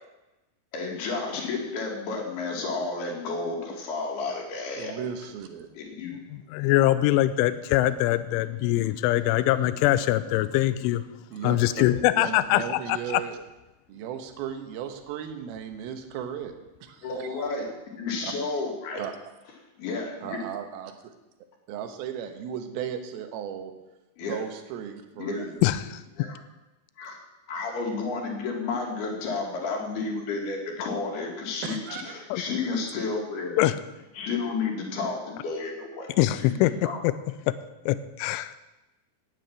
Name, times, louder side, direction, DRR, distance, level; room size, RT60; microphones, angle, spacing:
voice 1, 0.7-4.9 5.7-6.1 17.0-17.7 17.9-19.0 19.8-20.4 24.2-24.4 25.2-25.4 26.2-26.4 27.0-27.2 27.5-33.6 34.2-36.1 36.4-37.0, left 4 dB, 60° left, 3.9 m, -31 dB
voice 2, 4.8-5.7 11.3-13.4 13.9-16.6 16.8-17.4 18.2-18.3 19.0-19.2 20.2-20.9 21.7-23.7 24.2-25.7 31.6-32.1, right 8 dB, 75° right, 2.4 m, -36 dB
voice 3, 6.3-11.0 11.4-13.2 25.6-26.0 32.3-32.4 33.6-33.8 36.2-36.7 37.0-37.1 37.5-37.6 37.9-38.6, left 15 dB, 85° left, 3.1 m, -23 dB
9.8 x 9.2 x 8.9 m
omnidirectional pair, 5.6 m